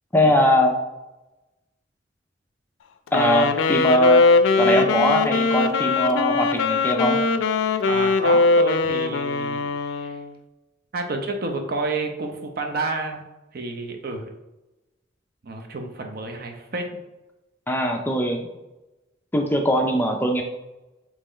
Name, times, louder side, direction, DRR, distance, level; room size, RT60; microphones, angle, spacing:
voice 1, 0.1-0.8 3.1-4.2 4.6-7.2 17.7-18.5 19.3-20.4, equal, 10° left, 3 dB, 0.4 m, -21 dB
Wind instrument woodwind instrument, 3.1-10.3, left 3 dB, 90° left, 0.4 m, -20 dB
voice 2, 7.8-10.2 10.9-13.2 13.5-14.3 15.4-16.9, right 3 dB, 55° right, 3 dB, 0.6 m, -30 dB
4.1 x 3.0 x 3.8 m, 1.0 s
head